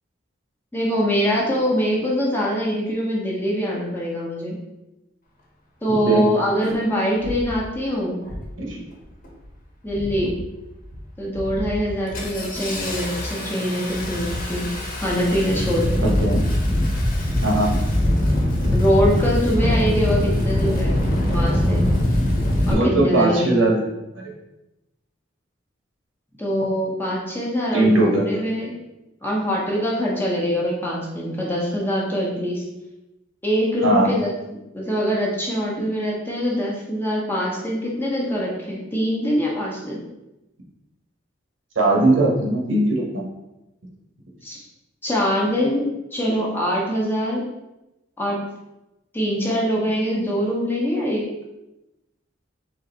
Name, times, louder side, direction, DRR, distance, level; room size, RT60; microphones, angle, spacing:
voice 1, 0.7-4.6 5.8-8.2 9.8-10.4 11.2-14.7 15.0-16.1 18.7-21.0 21.3-21.8 22.7-23.6 26.4-28.7 29.2-32.6 33.4-34.4 34.7-40.0 44.4-44.6 45.0-45.8 46.1-47.4 48.2-48.4 49.1-51.2, equal, 10° left, -4 dB, 0.9 m, -23 dB
Engine starting, 6.4-6.5 7.2-7.5 8.2-8.6 8.9-9.4 9.9-10.4 10.8-11.0 11.3-22.7, left 1 dB, 45° left, 1.2 m, -23 dB
voice 2, 22.7-23.8 24.1-24.3 27.7-28.4 33.8-34.1 41.7-43.2, right 2 dB, 85° right, -2 dB, 1.3 m, -19 dB
4.0 x 3.2 x 3.9 m, 0.95 s
head